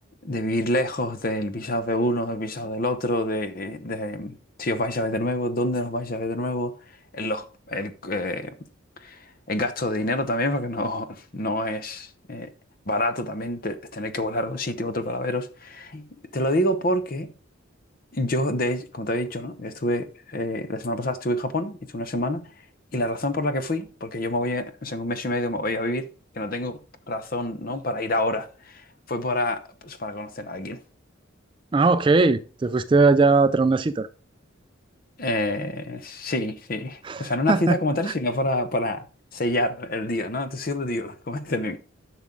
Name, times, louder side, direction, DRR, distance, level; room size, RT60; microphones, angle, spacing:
voice 1, 0.2-6.8 7.1-8.5 9.0-9.2 9.5-12.5 12.9-16.1 16.3-17.3 18.1-22.5 22.9-26.1 26.3-26.8 27.1-30.8 35.2-39.1 39.3-41.8, left 1 dB, 45° left, 0.8 m, -27 dB
voice 2, 31.7-34.1 37.0-37.8 38.1-38.2, right 3 dB, 25° right, 0.3 m, -20 dB
11.0 x 6.1 x 3.7 m
head